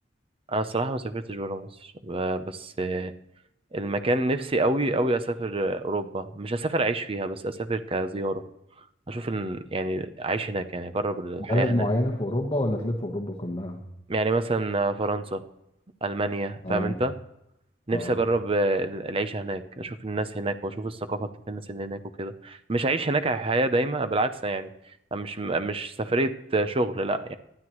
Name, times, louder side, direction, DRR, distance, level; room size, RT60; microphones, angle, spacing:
voice 1, 0.5-3.1 3.7-8.4 9.1-11.9 14.1-15.4 16.0-17.1 17.9-24.7 25.1-27.4, right 2 dB, 30° right, 11 dB, 0.7 m, -27 dB
voice 2, 11.5-13.8 16.6-17.0 17.9-18.2, left 1 dB, 25° left, 1 dB, 1.2 m, -27 dB
19.0 x 11.5 x 3.1 m, 0.81 s
head